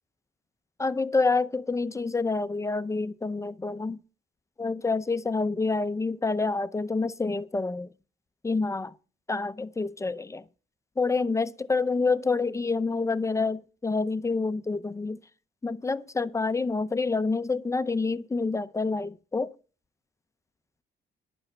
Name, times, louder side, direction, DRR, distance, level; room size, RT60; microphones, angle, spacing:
voice 1, 0.8-4.0 4.6-7.9 8.4-8.9 9.3-10.4 11.0-15.2 15.6-19.5, left 3 dB, 15° left, 0.6 m, -27 dB
11.0 x 5.7 x 7.9 m
cardioid pair, 90°, 20 cm